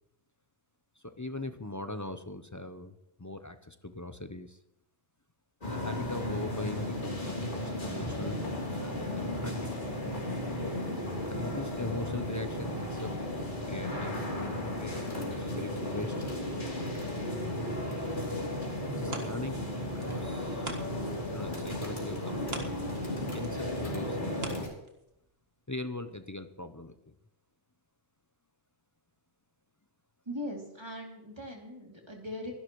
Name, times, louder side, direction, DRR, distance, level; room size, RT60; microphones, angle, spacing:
voice 1, 1.0-4.6 5.7-8.4 8.8-9.8 11.2-13.1 13.7-16.2 18.9-20.7 21.3-22.7 23.3-24.7 25.7-26.9, left 2 dB, 20° left, 9 dB, 0.5 m, -41 dB
sound 1, 5.6-24.6, left 1 dB, 45° left, 3.2 m, -34 dB
sound 2, 15.0-17.3 17.9-18.3 18.6-18.7 19.2-19.3 19.9-20.7 21.4-24.0 24.5-24.7, left 2 dB, 60° left, 3.3 m, -53 dB
sound 3, 19.0-21.2 21.5-25.3 25.8-25.9, right 3 dB, 60° right, 1.8 m, -45 dB
voice 2, 30.3-32.5, left 1 dB, 20° right, 0 dB, 2.8 m, -40 dB
23.5 x 11.5 x 3.1 m, 0.83 s
omnidirectional pair, 1.2 m